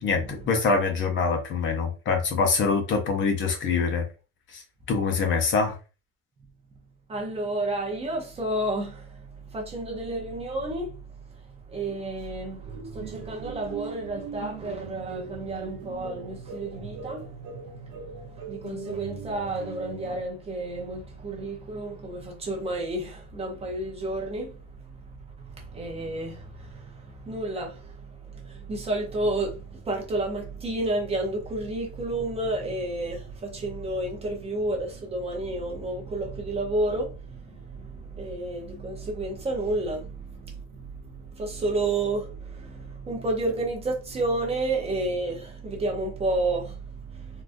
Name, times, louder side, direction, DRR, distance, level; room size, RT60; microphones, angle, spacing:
voice 1, 0.0-4.1 4.5-4.6 4.9-5.8, left 4 dB, 40° left, 0.6 m, -24 dB
voice 2, 7.1-11.0 11.3-25.2 25.4-47.4, right 2 dB, 20° right, 0.6 m, -31 dB
sound 1, 12.6-20.2, right 5 dB, 90° right, 0.9 m, -40 dB
3.6 x 2.5 x 2.5 m
cardioid pair, 175°, 31 cm